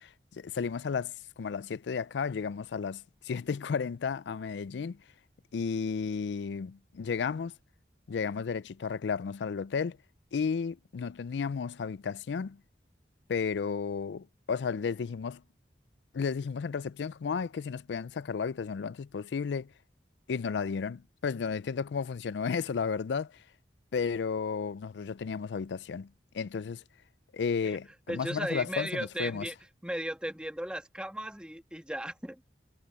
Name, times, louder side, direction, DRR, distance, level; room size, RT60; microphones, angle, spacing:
voice 1, 0.0-5.0 5.5-7.5 8.1-10.0 10.3-12.6 13.3-15.4 16.1-19.7 20.3-23.4 23.9-26.1 26.3-26.8 27.3-29.5, left 5 dB, 85° left, 0.4 m, -33 dB
voice 2, 28.1-29.5 29.8-32.4, right 1 dB, 5° right, 1.3 m, -36 dB
head